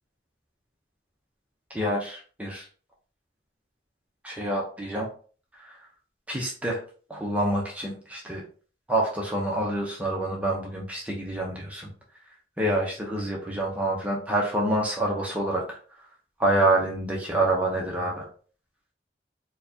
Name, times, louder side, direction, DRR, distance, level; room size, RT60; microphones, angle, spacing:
voice 1, 1.7-2.7 4.2-5.1 5.6-5.8 6.3-6.8 7.1-8.4 8.9-11.9 12.6-15.8 16.4-18.3, right 1 dB, 10° right, -2 dB, 0.5 m, -27 dB
4.5 x 2.2 x 2.6 m, 0.41 s
head